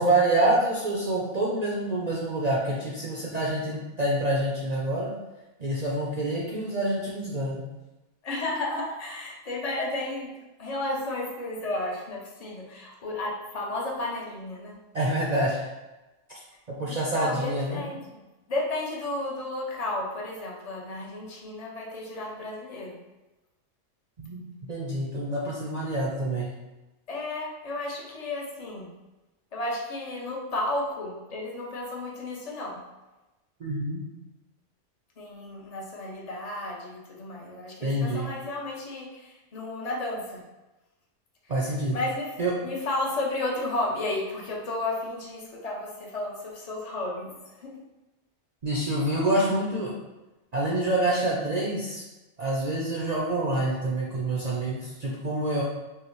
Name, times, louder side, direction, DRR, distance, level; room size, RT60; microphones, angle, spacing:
voice 1, 0.0-5.1 5.6-7.6 14.9-15.7 16.3-16.4 16.7-17.8 24.2-26.5 33.6-34.0 37.8-38.3 41.5-42.0 42.4-42.5 48.6-49.9 50.5-52.0 52.4-55.6, right 1 dB, 50° right, -5 dB, 0.5 m, -27 dB
voice 2, 8.2-10.3 10.6-14.8 16.8-18.2 18.5-23.0 27.1-28.9 29.5-32.8 35.2-40.4 41.9-42.3 42.6-47.8, left 2 dB, 40° left, -2 dB, 0.7 m, -33 dB
5.6 x 2.1 x 3.0 m, 1.0 s
omnidirectional pair, 1.3 m